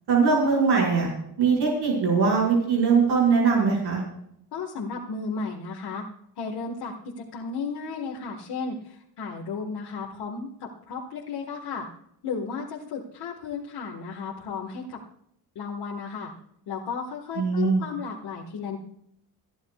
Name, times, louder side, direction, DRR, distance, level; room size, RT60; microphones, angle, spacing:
voice 1, 0.1-1.1 1.4-4.0 17.4-17.8, right 5 dB, 80° right, -3 dB, 5.5 m, -21 dB
voice 2, 4.5-6.0 6.4-11.9 12.2-15.0 15.6-16.3 16.7-18.8, left 5 dB, 80° left, -1 dB, 1.7 m, -34 dB
27.0 x 10.5 x 2.4 m, 0.74 s
cardioid pair, 125°, 40 cm